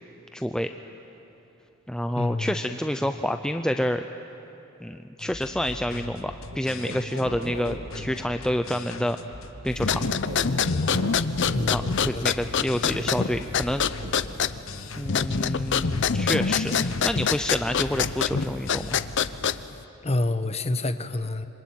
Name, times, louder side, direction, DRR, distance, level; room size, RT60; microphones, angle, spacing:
voice 1, 0.3-0.7 1.9-4.1 4.8-9.2 9.6-10.0 11.7-13.9 15.0-19.0, equal, 5° left, 7 dB, 0.5 m, -28 dB
voice 2, 2.1-2.6 11.5-12.3 20.0-21.5, left 2 dB, 30° left, 10 dB, 1.0 m, -27 dB
sound 1, 5.2-19.3, left 2 dB, 75° left, 1.3 m, -41 dB
sound 2, 6.5-7.8 9.8-12.1 12.9-13.4 14.0-14.1, right 1 dB, 80° right, 2.5 m, -37 dB
sound 3, 9.7-19.8, left 6 dB, 60° left, 0.7 m, -26 dB
26.5 x 24.0 x 9.3 m, 2.9 s
head